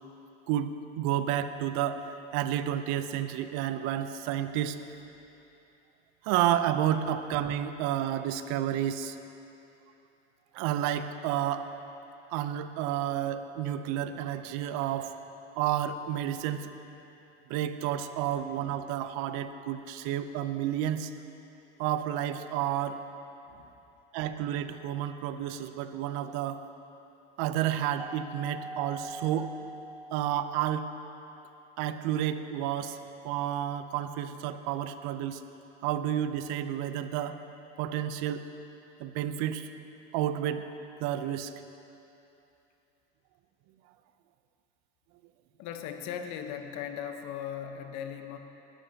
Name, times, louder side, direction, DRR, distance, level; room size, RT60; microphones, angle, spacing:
voice 1, 0.5-4.8 6.2-9.2 10.5-11.7 12.3-15.1 15.6-16.7 17.5-21.1 21.8-23.0 24.1-26.6 27.4-29.5 30.1-30.9 31.8-33.0 33.2-35.4 35.8-37.4 37.8-38.5 39.0-39.7 40.1-40.7 41.0-41.5, right 11 dB, 65° right, 10 dB, 0.8 m, -30 dB
Mallet percussion, 28.0-30.4, right 1 dB, 10° right, 2.7 m, -42 dB
voice 2, 45.6-48.4, left 8 dB, 60° left, 6 dB, 1.2 m, -38 dB
19.5 x 12.5 x 2.9 m, 2.9 s
hypercardioid pair, 90°, 29 cm